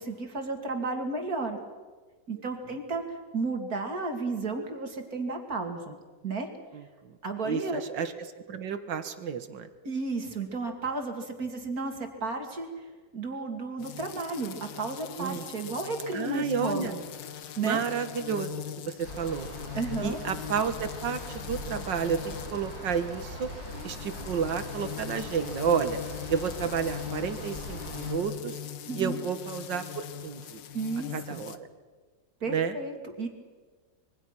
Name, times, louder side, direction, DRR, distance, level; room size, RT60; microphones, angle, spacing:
voice 1, 0.0-1.6 2.3-6.0 6.2-6.5 7.2-7.8 9.8-12.8 13.1-17.0 17.6-17.8 19.7-20.2 28.9-29.2 30.7-31.5 32.4-33.3, right 3 dB, 55° right, 4 dB, 3.0 m, -33 dB
voice 2, 6.7-7.1 7.4-8.1 8.5-9.7 15.2-15.4 16.1-16.9 17.6-18.5 18.9-19.5 20.0-23.5 23.8-26.0 26.3-28.6 29.0-30.6 31.1-31.6 32.5-32.8, right 6 dB, 90° right, 10 dB, 2.1 m, -31 dB
sound 1, 13.8-31.6, left 9 dB, 85° left, 1.7 m, -41 dB
sound 2, 19.0-28.1, equal, 55° left, 7.4 m, -41 dB
26.0 x 23.0 x 6.1 m, 1.4 s
omnidirectional pair, 1.9 m